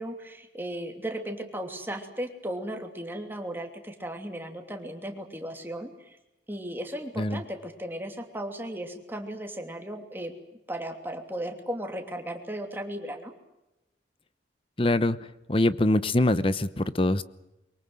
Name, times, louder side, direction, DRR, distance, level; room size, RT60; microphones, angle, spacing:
voice 1, 0.0-6.2 6.5-13.3, right 1 dB, 10° right, 4 dB, 2.9 m, -36 dB
voice 2, 14.8-15.2 15.5-17.2, left 1 dB, 30° left, 14 dB, 0.9 m, -23 dB
23.5 x 23.5 x 7.9 m, 0.96 s
head